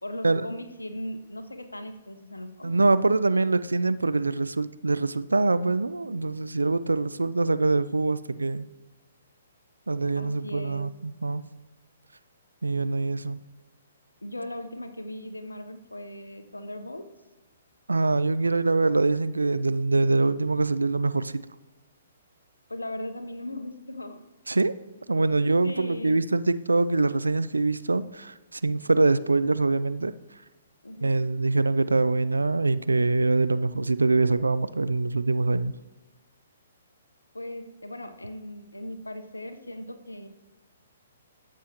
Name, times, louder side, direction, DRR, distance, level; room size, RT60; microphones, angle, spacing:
voice 1, 0.0-2.8 10.2-10.9 14.2-17.1 22.7-24.2 25.1-26.2 30.8-31.2 37.3-40.3, left 1 dB, 90° left, 8 dB, 0.8 m, -38 dB
voice 2, 2.6-8.7 9.9-11.4 12.6-13.4 17.9-21.4 24.5-24.7 25.1-30.1 31.0-35.7, right 3 dB, 80° right, 14 dB, 0.4 m, -24 dB
14.0 x 7.5 x 2.9 m, 1.2 s
figure-of-eight pair, 125°, 0 cm